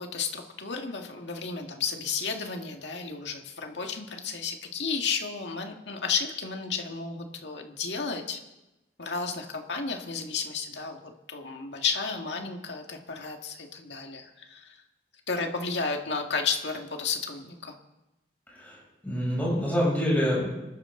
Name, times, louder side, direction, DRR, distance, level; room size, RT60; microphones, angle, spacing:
voice 1, 0.0-8.4 9.0-14.8 15.3-17.8, left 5 dB, 90° left, 3 dB, 1.9 m, -32 dB
voice 2, 19.0-20.5, equal, 10° left, -6 dB, 6.9 m, -26 dB
26.0 x 12.0 x 3.8 m, 0.99 s
head